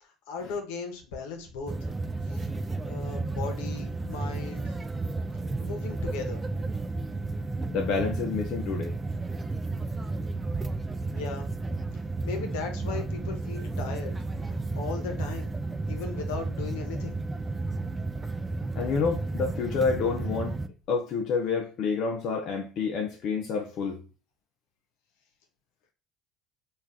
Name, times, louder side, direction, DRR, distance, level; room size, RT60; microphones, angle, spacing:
voice 1, 0.0-1.7 2.3-2.4 2.8-4.7 5.6-6.4 11.1-11.5 12.2-14.1 14.5-15.5 15.9-17.2, left 4 dB, 80° left, 0.9 m, -37 dB
sound 1, 1.7-20.7, right 3 dB, 20° right, 0.4 m, -32 dB
voice 2, 7.7-9.0 18.8-20.6 20.9-24.0, left 5 dB, 60° left, 0.5 m, -28 dB
3.2 x 2.4 x 3.5 m
supercardioid pair, 80°, 0 cm